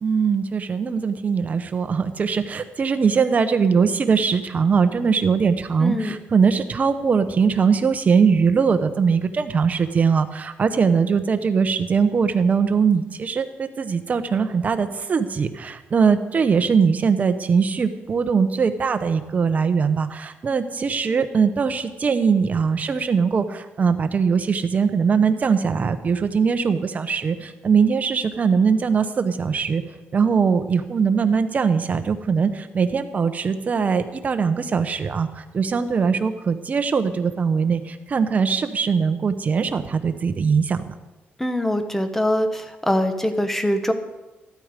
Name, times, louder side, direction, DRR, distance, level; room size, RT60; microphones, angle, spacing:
voice 1, 0.0-29.8 30.1-40.8, right 5 dB, 35° right, 8 dB, 1.1 m, -21 dB
voice 2, 5.8-6.1 41.4-43.9, left 1 dB, 10° left, 8 dB, 1.3 m, -23 dB
14.0 x 12.5 x 5.2 m, 1.1 s
cardioid pair, 125°, 4 cm